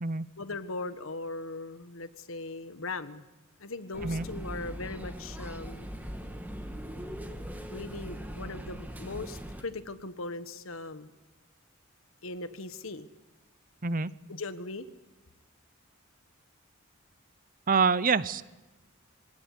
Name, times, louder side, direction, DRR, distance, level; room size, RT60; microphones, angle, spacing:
voice 1, 0.4-3.2 3.6-5.9 7.7-11.1 12.2-13.1 14.3-14.9, left 3 dB, 85° left, 12 dB, 1.5 m, -39 dB
sound 1, 3.9-9.6, equal, 10° right, 2.0 m, -40 dB
voice 2, 17.7-18.4, right 5 dB, 40° right, 17 dB, 0.8 m, -26 dB
24.0 x 18.0 x 9.9 m, 1.1 s
head